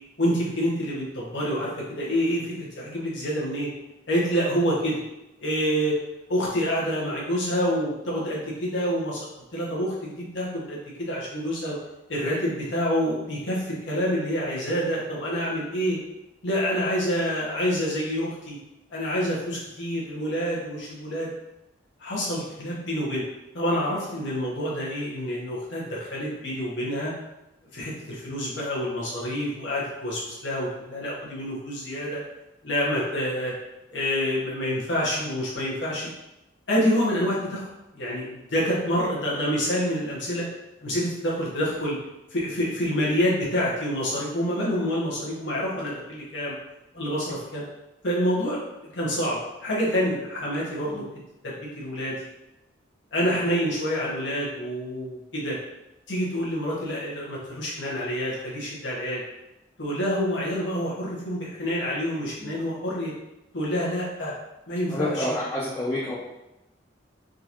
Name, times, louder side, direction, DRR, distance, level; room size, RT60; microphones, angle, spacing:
voice 1, 0.2-3.7 4.1-5.0 5.4-6.0 6.3-9.2 9.5-11.7 12.1-16.0 16.4-18.6 18.9-21.3 22.0-23.2 23.5-27.1 27.7-32.2 32.6-33.5 33.9-36.1 36.7-37.7 37.9-40.5 40.8-42.0 42.3-46.5 46.9-47.6 48.0-48.6 48.9-51.0 51.4-52.1 53.1-55.6 56.1-59.2 59.8-63.1 63.5-64.3 64.7-65.3, equal, 70° left, -5 dB, 1.0 m, -27 dB
voice 2, 64.9-66.1, left 1 dB, 15° left, -8 dB, 0.5 m, -28 dB
3.8 x 2.5 x 2.9 m, 0.93 s
head